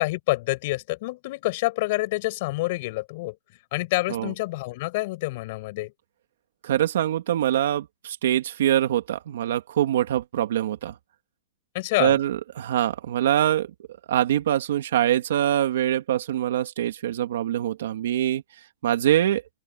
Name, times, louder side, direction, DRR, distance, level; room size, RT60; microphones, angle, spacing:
voice 1, 0.0-3.4 3.7-5.9 11.7-12.2, left 21 dB, 35° left, 5.5 m, -27 dB
voice 2, 6.6-10.9 12.0-13.7 14.1-18.4 18.8-19.4, right 11 dB, 60° right, 2.4 m, -24 dB
open air
hypercardioid pair, 175°, 0 cm